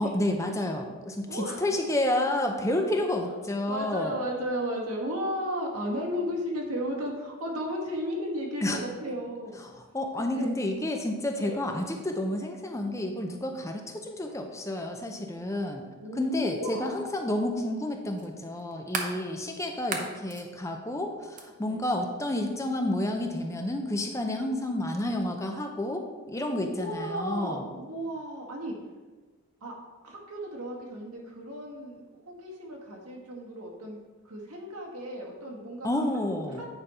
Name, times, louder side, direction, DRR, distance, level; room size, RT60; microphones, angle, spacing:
voice 1, 0.0-4.1 8.6-8.8 9.6-15.9 16.2-27.7 35.8-36.6, left 1 dB, 15° left, 4 dB, 0.5 m, -30 dB
voice 2, 1.3-1.6 3.2-3.3 3.7-9.6 10.4-10.5 11.4-11.7 16.0-17.0 19.1-19.3 21.6-21.8 26.6-28.7 29.6-29.7 30.0-32.0 32.3-34.0 34.2-36.7, equal, 90° right, -1 dB, 1.8 m, -34 dB
sound 1, 16.2-16.3 18.2-19.2 19.8-20.5 21.3-21.5, right 4 dB, 35° right, 0.8 m, -34 dB
8.9 x 5.2 x 4.2 m, 1.3 s
head